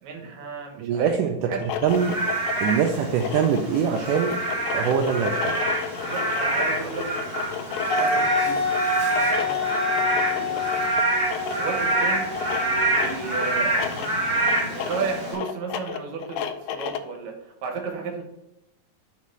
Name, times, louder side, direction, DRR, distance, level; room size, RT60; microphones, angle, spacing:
voice 1, 0.0-1.1 1.4-1.6 6.0-7.1 7.9-8.9 9.1-10.9 11.4-12.3 12.9-13.9 14.6-18.2, right 4 dB, 65° right, 2 dB, 2.2 m, -34 dB
voice 2, 0.8-1.5 1.8-4.4 4.7-5.6, right 7 dB, 80° right, 3 dB, 2.0 m, -24 dB
sound 1, 1.5-17.2, left 8 dB, 85° left, 2.3 m, -33 dB
Frog / Rain, 1.9-15.3, right 2 dB, 35° right, 2.0 m, -27 dB
Wind instrument woodwind instrument, 7.9-13.5, left 2 dB, 60° left, 2.2 m, -27 dB
6.4 x 4.1 x 5.3 m, 0.87 s
omnidirectional pair, 4.1 m